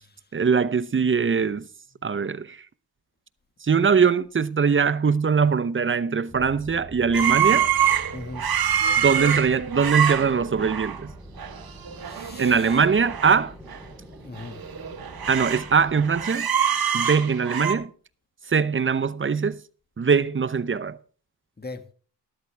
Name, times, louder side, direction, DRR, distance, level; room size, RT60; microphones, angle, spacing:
voice 1, 0.3-1.7 2.0-2.6 3.6-7.7 9.0-11.1 12.4-13.5 15.3-16.5 16.9-17.9 18.5-19.6 20.0-21.0, right 5 dB, 30° right, 0.7 m, -22 dB
sound 1, 6.3-16.3, right 1 dB, ahead, 3.6 m, -44 dB
sound 2, 7.1-11.0 11.4-11.6 11.9-13.4 13.7-13.8 14.4-15.7 16.0-17.7, right 9 dB, 60° right, 1.3 m, -25 dB
voice 2, 8.1-8.4 11.9-12.8 14.0-14.6 21.6-21.8, left 3 dB, 25° left, 1.6 m, -40 dB
13.0 x 12.0 x 3.4 m
cardioid pair, 65°, 41 cm